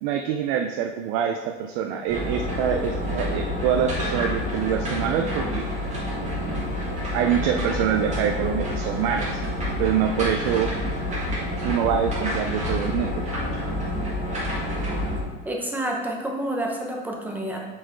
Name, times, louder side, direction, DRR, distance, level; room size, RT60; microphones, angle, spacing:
voice 1, 0.0-5.7 7.1-9.4 9.8-10.7 11.6-13.2, right 8 dB, 75° right, 4 dB, 0.6 m, -25 dB
sound 1, 2.1-15.2, left 1 dB, 25° right, 1.8 m, -28 dB
voice 2, 15.4-17.6, right 1 dB, 5° right, -1 dB, 0.9 m, -29 dB
6.2 x 4.7 x 4.5 m, 1.4 s
cardioid pair, 155°, 29 cm